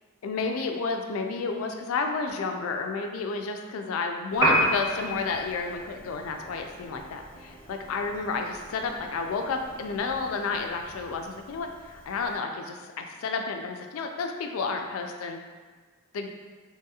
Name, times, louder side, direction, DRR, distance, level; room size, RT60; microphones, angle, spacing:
voice 1, 0.2-15.4 16.1-16.3, left 4 dB, 80° left, 4 dB, 0.3 m, -31 dB
Piano, 4.3-12.4, equal, 15° right, 0.6 m, -33 dB
sound 1, 4.4-10.6, right 1 dB, 80° right, 1.0 m, -52 dB
3.1 x 2.8 x 2.3 m, 1.4 s
head